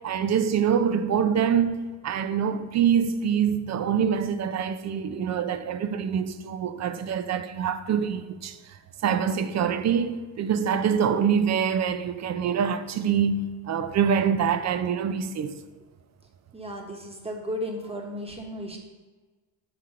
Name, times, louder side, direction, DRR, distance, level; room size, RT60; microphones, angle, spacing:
voice 1, 0.0-8.6 9.0-15.6, right 7 dB, 35° right, 0.5 m, -25 dB
voice 2, 16.5-18.8, equal, 15° right, 1.2 m, -34 dB
6.7 x 4.3 x 3.7 m
supercardioid pair, 65°, 47 cm